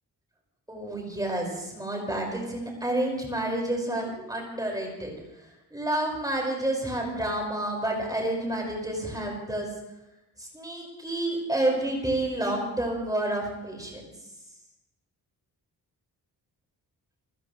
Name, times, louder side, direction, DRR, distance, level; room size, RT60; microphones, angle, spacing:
voice 1, 0.7-5.1 5.7-9.7 10.4-14.0, right 1 dB, 10° right, 0 dB, 5.4 m, -29 dB
29.5 x 15.0 x 3.2 m, 0.96 s
wide cardioid pair, 170°, 39 cm